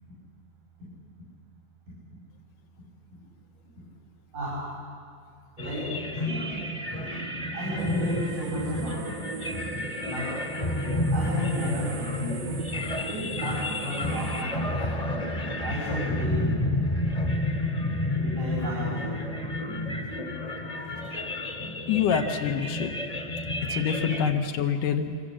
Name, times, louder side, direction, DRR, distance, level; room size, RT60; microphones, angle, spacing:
voice 1, 4.3-4.7 5.6-6.5 7.5-9.2 10.1-10.4 10.7-12.4 13.1-14.8 15.6-16.5 18.1-19.1, left 1 dB, 80° right, -9 dB, 8.3 m, -34 dB
sound 1, 5.6-24.3, left 1 dB, 15° left, 1.4 m, -30 dB
sound 2, 7.8-14.4, right 8 dB, 60° right, 2.0 m, -39 dB
voice 2, 21.9-23.0 23.7-25.1, left 7 dB, 85° left, 4 dB, 2.7 m, -26 dB
26.0 x 24.5 x 7.4 m, 2.3 s
omnidirectional pair, 3.6 m